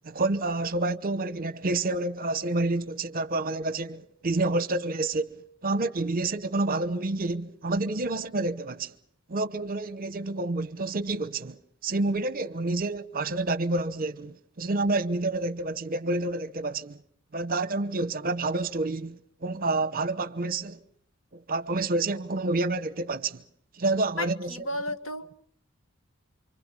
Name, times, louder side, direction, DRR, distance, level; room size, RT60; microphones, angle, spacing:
voice 1, 0.0-8.9 9.3-17.0 17.3-20.8 21.3-23.4 23.8-24.5, right 2 dB, 45° right, 1.0 m, -29 dB
voice 2, 24.2-25.3, left 2 dB, 70° left, 1.6 m, -33 dB
28.5 x 25.0 x 5.5 m
head